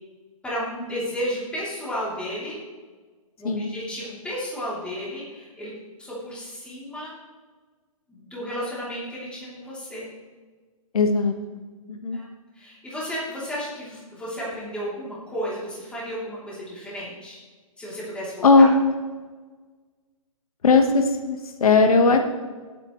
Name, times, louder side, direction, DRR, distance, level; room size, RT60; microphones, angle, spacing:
voice 1, 0.4-2.6 3.4-5.7 6.0-7.1 8.1-10.1 12.1-12.3 12.5-17.4 17.8-18.6, equal, 5° left, -7 dB, 3.3 m, -33 dB
voice 2, 10.9-11.6 11.9-12.2 18.4-18.9 20.6-22.2, left 3 dB, 80° left, 5 dB, 1.5 m, -18 dB
17.5 x 8.7 x 3.2 m, 1.4 s
hypercardioid pair, 155°, 18 cm